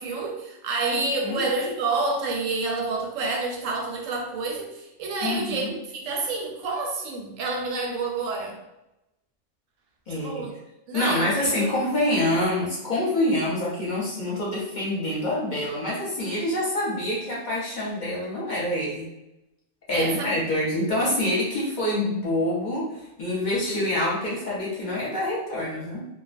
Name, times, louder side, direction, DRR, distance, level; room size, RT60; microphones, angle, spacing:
voice 1, 0.0-5.7 5.9-8.6 10.1-10.5 10.9-11.5 19.9-20.4, right 3 dB, 85° right, 0 dB, 1.0 m, -28 dB
voice 2, 0.9-1.4 5.2-5.7 10.1-10.4 10.9-19.1 19.9-26.1, left 1 dB, 45° left, -6 dB, 0.7 m, -26 dB
2.4 x 2.1 x 2.4 m, 0.90 s
omnidirectional pair, 1.3 m